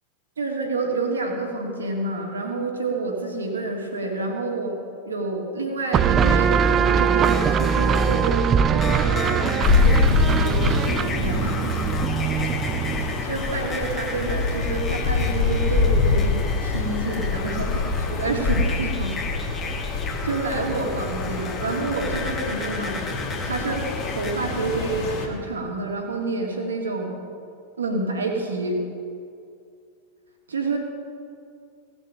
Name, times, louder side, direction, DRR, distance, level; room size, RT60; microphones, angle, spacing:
voice 1, 0.4-4.8 5.0-11.8 13.0-19.2 19.6-23.0 23.4-27.1 27.8-28.8 30.5-30.8, right 3 dB, 70° right, 1 dB, 2.2 m, -28 dB
sound 1, 5.9-13.3, right 7 dB, 25° right, 0.4 m, -22 dB
sound 2, 7.2-24.3, left 4 dB, 20° left, 1.6 m, -35 dB
sound 3, 9.6-25.3, left 4 dB, 40° left, 2.5 m, -25 dB
17.0 x 7.2 x 7.6 m, 2.3 s
figure-of-eight pair, 90°, 0 cm